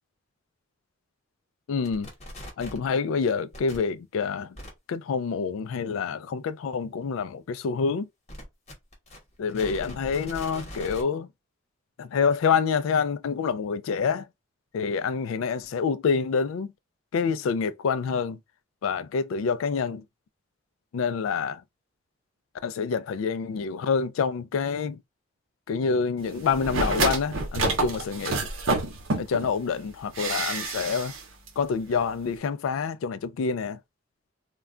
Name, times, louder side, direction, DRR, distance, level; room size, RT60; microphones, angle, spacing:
voice 1, 1.7-2.1 2.6-4.6 4.9-8.1 9.4-11.3 12.0-14.3 14.7-16.7 17.1-18.4 18.8-20.0 20.9-21.6 22.6-25.0 25.7-28.5 29.2-31.1 31.6-33.8, left 5 dB, 80° left, 0.3 m, -27 dB
sound 1, 1.8-2.9 3.5-3.8 4.6-4.7 8.3-11.0, equal, 35° left, 1.0 m, -41 dB
sound 2, 26.5-29.5 30.1-31.2 31.5-31.6, right 3 dB, 85° right, 0.7 m, -28 dB
2.2 x 2.2 x 3.6 m
head